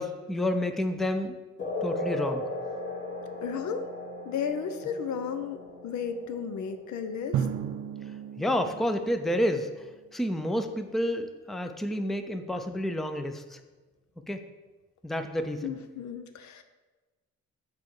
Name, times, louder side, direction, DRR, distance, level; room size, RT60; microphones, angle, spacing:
voice 1, 0.0-1.4 1.8-2.4 8.4-9.7 10.1-13.6 14.3-14.4 15.0-15.8, left 1 dB, ahead, 7 dB, 0.5 m, -29 dB
sound 1, 1.6-8.6, left 1 dB, 40° left, 1.6 m, -37 dB
voice 2, 3.4-3.8 4.2-7.5 15.6-16.6, left 7 dB, 70° left, 9 dB, 0.7 m, -34 dB
Drum, 7.3-10.0, right 9 dB, 70° right, 0.5 m, -34 dB
6.8 x 4.2 x 4.7 m, 1.2 s
cardioid pair, 90°, 30 cm